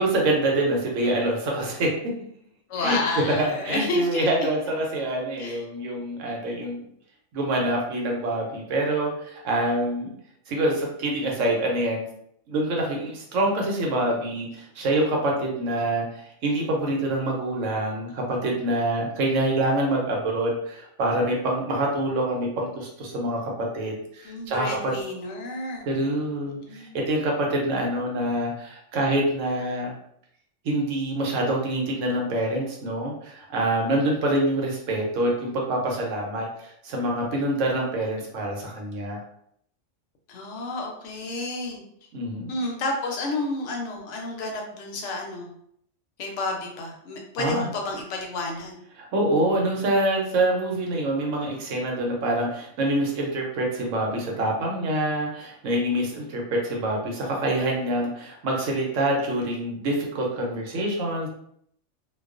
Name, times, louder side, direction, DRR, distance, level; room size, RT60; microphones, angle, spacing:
voice 1, 0.0-1.9 2.8-6.8 7.3-10.1 10.5-12.0 12.5-24.9 25.8-29.9 30.6-39.2 42.1-42.5 47.4-47.7 49.0-61.3, right 1 dB, 80° right, 0 dB, 1.0 m, -26 dB
voice 2, 2.7-4.3 5.4-5.6 24.2-25.9 26.4-27.0 40.3-41.8 42.5-45.5 46.2-48.8, left 2 dB, 75° left, 1 dB, 0.9 m, -30 dB
2.3 x 2.3 x 2.4 m, 0.70 s
omnidirectional pair, 1.3 m